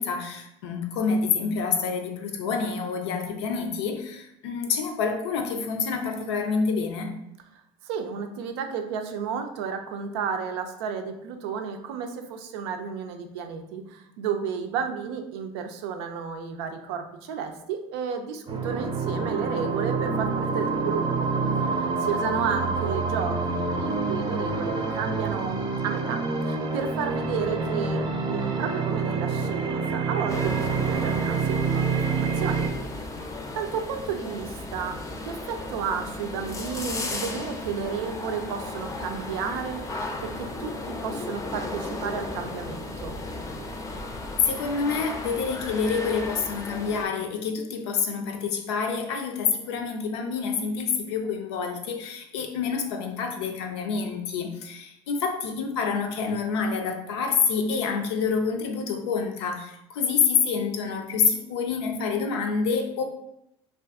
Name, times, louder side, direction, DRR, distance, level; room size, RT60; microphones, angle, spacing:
voice 1, 0.0-7.1 44.4-63.0, left 5 dB, 90° left, 4 dB, 0.5 m, -27 dB
voice 2, 7.8-21.3 21.7-28.0 28.3-32.7 33.0-33.1 33.5-43.2, right 6 dB, 85° right, 6 dB, 0.4 m, -32 dB
sound 1, 18.5-32.7, right 4 dB, 35° right, 0.5 m, -27 dB
sound 2, 30.3-47.1, left 2 dB, 25° left, 0.5 m, -35 dB
2.4 x 2.4 x 3.5 m, 0.80 s
supercardioid pair, 85°, 14 cm